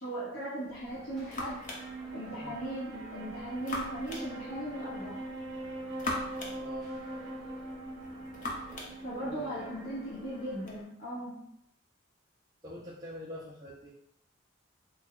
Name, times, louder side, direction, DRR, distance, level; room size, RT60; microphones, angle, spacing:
voice 1, 0.0-1.6 2.1-5.2 9.0-11.4, right 1 dB, 60° left, -9 dB, 0.9 m, -38 dB
sound 1, 0.7-10.8, left 1 dB, 40° left, 0.6 m, -43 dB
sound 2, 0.9-10.8, left 1 dB, ahead, 0.8 m, -52 dB
Wind instrument woodwind instrument, 1.6-11.1, right 2 dB, 60° right, 0.6 m, -43 dB
voice 2, 6.6-6.9 9.2-9.8 12.6-13.9, equal, 20° right, -6 dB, 0.4 m, -45 dB
3.3 x 2.1 x 3.6 m, 0.74 s
head